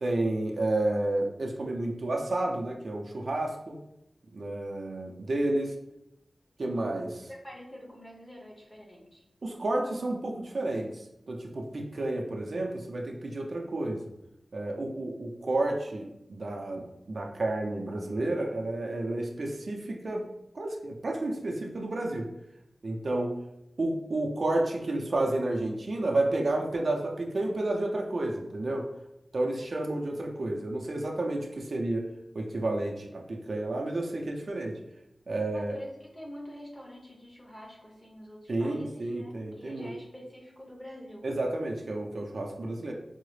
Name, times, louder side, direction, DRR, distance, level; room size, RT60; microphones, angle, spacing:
voice 1, 0.0-3.8 4.3-5.7 6.6-7.3 9.4-14.1 14.5-20.3 20.5-22.3 22.8-23.4 23.8-28.9 29.3-32.0 32.3-34.8 35.3-35.8 38.5-39.9 41.2-42.9, right 2 dB, 60° right, 1 dB, 0.4 m, -31 dB
voice 2, 7.3-9.2 35.5-41.2, equal, 20° left, -2 dB, 1.0 m, -46 dB
4.6 x 2.0 x 3.1 m, 0.87 s
wide cardioid pair, 100°, 0 cm